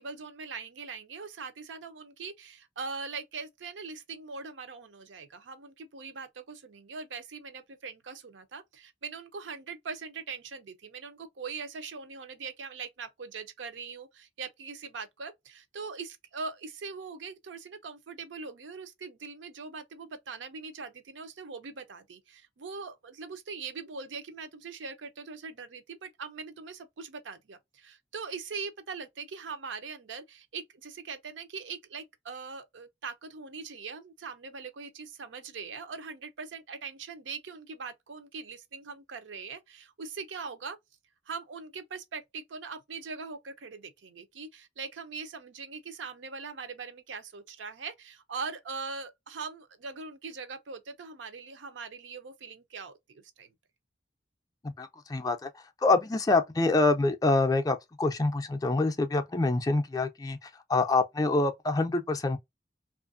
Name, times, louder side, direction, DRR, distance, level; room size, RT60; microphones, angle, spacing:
voice 1, 0.0-40.8 41.3-53.5, right 5 dB, 90° right, 0.5 m, -41 dB
voice 2, 54.6-62.4, left 3 dB, 20° left, 0.3 m, -26 dB
2.6 x 2.5 x 2.4 m
head